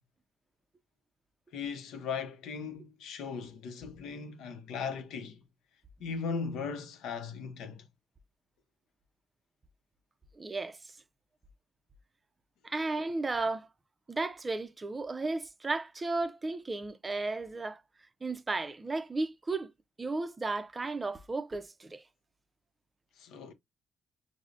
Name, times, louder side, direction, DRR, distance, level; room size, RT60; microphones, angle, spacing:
voice 1, 1.5-5.4 6.0-7.9 23.2-23.5, left 5 dB, 85° left, 0.6 m, -38 dB
voice 2, 10.3-10.9 12.6-13.7 14.1-17.8 18.2-19.7 20.0-22.0, right 3 dB, 25° right, 0.4 m, -34 dB
4.9 x 2.0 x 2.4 m
cardioid pair, 90°, 0 cm